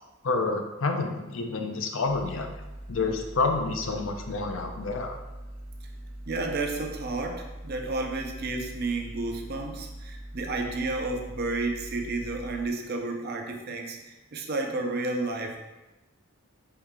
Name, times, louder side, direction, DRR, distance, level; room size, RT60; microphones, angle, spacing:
voice 1, 0.2-2.5 2.9-5.2, left 3 dB, 60° left, 4 dB, 0.5 m, -28 dB
sound 1, 2.1-12.7, right 1 dB, 75° right, 0.9 m, -42 dB
voice 2, 6.3-15.6, right 2 dB, 45° right, 2 dB, 0.5 m, -31 dB
4.5 x 2.7 x 3.6 m, 1.1 s
head